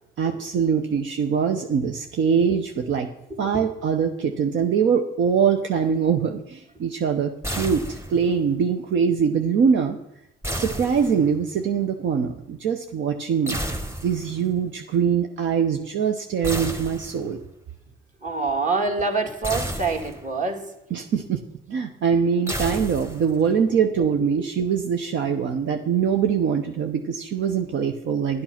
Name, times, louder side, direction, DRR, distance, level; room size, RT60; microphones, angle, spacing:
voice 1, 0.2-3.1 3.4-10.0 10.5-13.6 14.0-17.4 20.9-21.4 21.7-28.4, right 7 dB, 70° right, 5 dB, 0.9 m, -23 dB
voice 2, 3.3-3.6 18.2-20.7 24.2-24.3, right 3 dB, 40° right, 3 dB, 2.1 m, -26 dB
sound 1, 7.4-8.4 10.4-11.5 13.5-14.4 16.4-17.4 19.4-20.4 22.5-23.5, equal, 15° right, 1.3 m, -32 dB
10.5 x 8.8 x 5.8 m, 0.86 s
cardioid pair, 90°, 20 cm